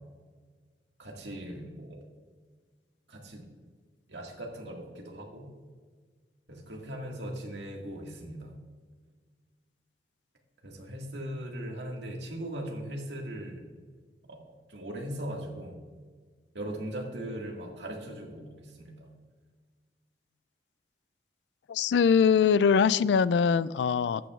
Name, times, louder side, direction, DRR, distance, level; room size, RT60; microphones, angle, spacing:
voice 1, 1.0-2.0 3.1-3.5 4.1-5.5 6.5-8.5 10.6-13.7 14.3-15.8 16.5-19.1, right 1 dB, 90° right, 1.8 m, -39 dB
voice 2, 21.7-24.2, left 6 dB, 85° left, 0.3 m, -22 dB
13.0 x 9.1 x 2.4 m
head